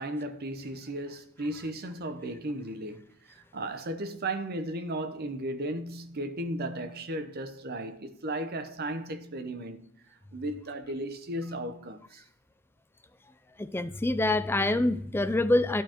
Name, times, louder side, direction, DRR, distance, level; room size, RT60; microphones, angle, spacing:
voice 1, 0.0-9.9 10.3-12.2 14.8-14.9, right 1 dB, 50° right, 0.8 m, -35 dB
voice 2, 13.6-15.8, left 2 dB, 10° left, 0.4 m, -26 dB
12.0 x 4.6 x 2.9 m
head